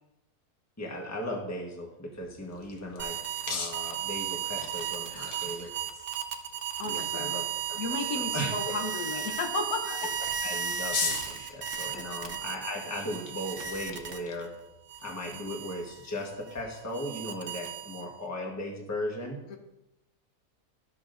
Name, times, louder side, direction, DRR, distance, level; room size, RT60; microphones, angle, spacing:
voice 1, 0.8-3.2 3.5-5.8 6.8-7.8 8.1-8.8 9.9-10.0 10.4-14.5 15.0-19.4, left 1 dB, 10° left, 0 dB, 1.1 m, -37 dB
sound 1, 2.2-16.6, left 4 dB, 50° left, 0.6 m, -42 dB
sound 2, 3.0-14.5 14.9-18.3, right 8 dB, 50° right, 0.7 m, -35 dB
voice 2, 5.1-5.7 6.8-7.4 7.8-10.3 11.3-11.6 11.9-12.0 19.5-19.6, left 3 dB, 70° left, 3 dB, 1.4 m, -35 dB
12.5 x 6.9 x 2.5 m, 0.92 s
omnidirectional pair, 1.7 m